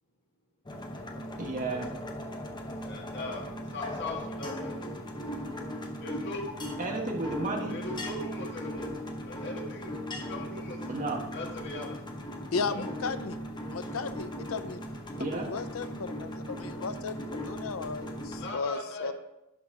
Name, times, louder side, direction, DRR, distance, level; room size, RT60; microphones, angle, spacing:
sound 1, 0.7-18.5, equal, 20° left, 0.9 m, -38 dB
voice 1, 1.4-1.9 6.8-7.8 10.9-11.2 15.2-15.5, right 2 dB, 40° right, 1 dB, 1.3 m, -32 dB
voice 2, 2.8-4.8 6.0-6.5 7.7-8.9 9.2-10.0 10.3-10.8 11.3-12.0 12.7-12.9 18.4-19.1, left 2 dB, 55° left, 0 dB, 1.6 m, -39 dB
voice 3, 12.5-13.4 13.7-14.8 15.3-19.1, left 4 dB, 80° left, 12 dB, 0.5 m, -35 dB
11.5 x 4.1 x 4.7 m, 0.95 s
head